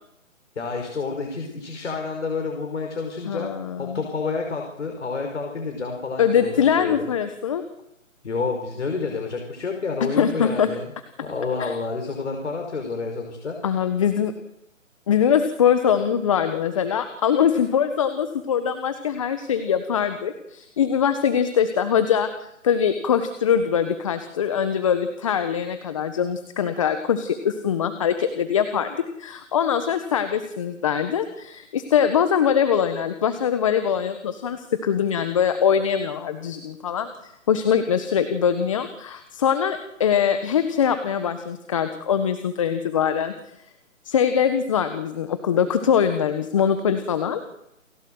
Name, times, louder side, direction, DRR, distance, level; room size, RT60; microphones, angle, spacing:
voice 1, 0.6-3.5 3.8-7.1 8.2-10.9 11.2-13.6, left 4 dB, 60° left, 3 dB, 5.5 m, -29 dB
voice 2, 3.2-4.0 6.2-7.6 10.0-10.7 11.6-11.7 13.6-14.3 15.1-43.3 44.0-47.4, left 8 dB, 25° left, 9 dB, 1.3 m, -22 dB
29.0 x 16.5 x 8.0 m, 0.83 s
hypercardioid pair, 165°, 40 cm